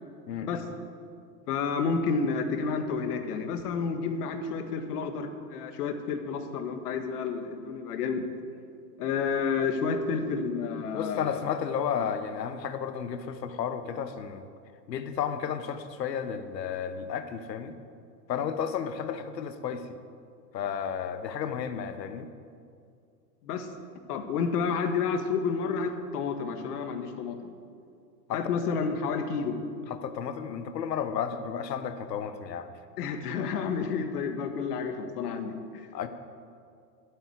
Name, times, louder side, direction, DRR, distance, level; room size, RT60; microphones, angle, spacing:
voice 1, 1.5-8.3 9.0-11.5 23.4-23.7 24.1-27.5 28.3-29.6 33.0-35.9, left 5 dB, 70° left, 6 dB, 1.8 m, -30 dB
voice 2, 10.9-14.5 14.9-17.7 18.3-20.0 20.5-22.3 28.3-28.4 29.9-32.8 35.9-36.1, left 7 dB, 85° left, 9 dB, 1.3 m, -32 dB
12.0 x 9.5 x 8.0 m, 2.3 s
hypercardioid pair, 130°, 49 cm